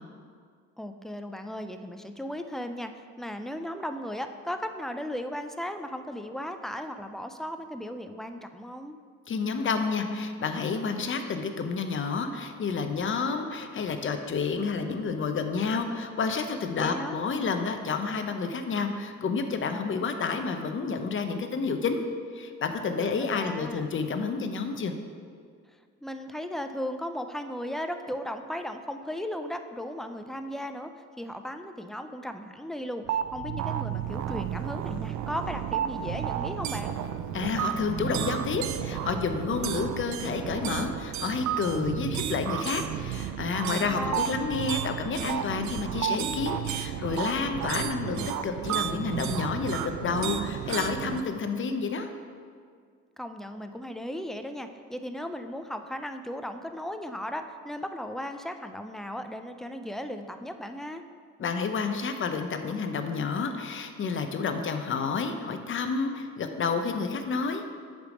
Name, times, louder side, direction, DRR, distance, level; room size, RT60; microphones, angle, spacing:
voice 1, 0.8-9.0 16.8-17.2 22.9-23.9 26.0-37.0 43.7-44.3 53.2-61.0, equal, ahead, 7 dB, 0.3 m, -36 dB
voice 2, 9.3-22.0 22.3-25.0 37.3-52.1 61.4-67.7, left 5 dB, 40° left, 7 dB, 0.6 m, -30 dB
sound 1, 33.1-51.2, right 9 dB, 70° right, 0.4 m, -32 dB
8.2 x 3.4 x 5.1 m, 2.1 s
cardioid pair, 90°, 30 cm